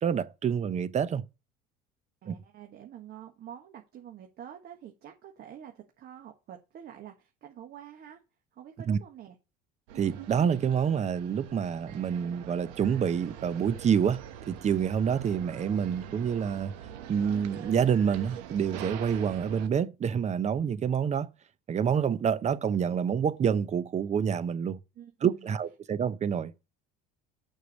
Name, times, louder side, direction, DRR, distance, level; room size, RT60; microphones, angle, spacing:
voice 1, 0.0-1.2 2.3-2.4 8.9-9.0 9.9-14.2 14.5-16.7 17.1-21.3 21.7-24.8 25.2-26.7, right 7 dB, 35° right, 0.8 m, -27 dB
voice 2, 2.2-8.2 8.5-9.4 24.9-25.5, right 10 dB, 50° right, 1.5 m, -47 dB
sound 1, 9.9-19.7, right 10 dB, 85° right, 1.2 m, -44 dB
6.5 x 6.4 x 5.3 m
supercardioid pair, 95°, 21 cm